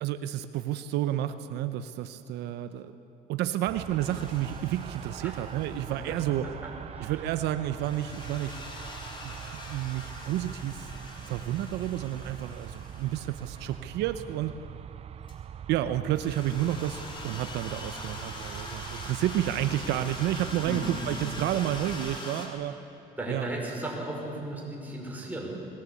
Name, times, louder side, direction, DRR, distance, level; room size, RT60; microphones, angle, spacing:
voice 1, 0.0-2.9 3.3-6.4 7.0-8.6 9.2-10.9 11.3-14.5 15.7-22.8 23.3-23.4, right 12 dB, 85° right, 11 dB, 0.8 m, -30 dB
sound 1, 3.7-22.2, right 9 dB, 35° right, 0.4 m, -43 dB
sound 2, 4.0-6.5 7.8-13.9 15.3-15.4 16.2-22.5, left 2 dB, 30° left, 3.7 m, -43 dB
voice 2, 5.8-7.3 20.5-21.2 23.2-25.6, right 1 dB, 10° right, -2 dB, 5.4 m, -37 dB
21.0 x 18.5 x 8.4 m, 3.0 s
cardioid pair, 110°, 17 cm